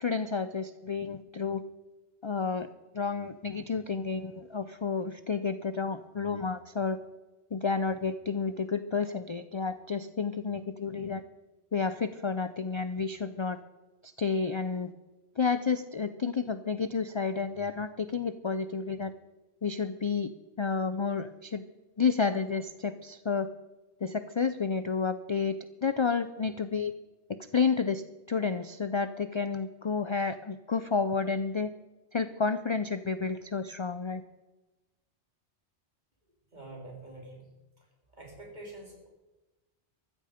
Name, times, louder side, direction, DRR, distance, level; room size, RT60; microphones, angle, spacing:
voice 1, 0.0-1.6 2.2-2.7 2.9-7.0 7.5-11.2 11.7-13.6 14.2-14.9 15.4-19.1 19.6-20.3 20.6-21.6 22.0-23.5 24.0-25.5 25.8-26.9 27.5-31.7 32.1-34.2, left 5 dB, 40° left, 12 dB, 0.4 m, -30 dB
voice 2, 36.5-37.5 38.1-39.1, right 2 dB, 40° right, -1 dB, 4.1 m, -46 dB
14.5 x 14.0 x 5.1 m, 1.1 s
omnidirectional pair, 1.1 m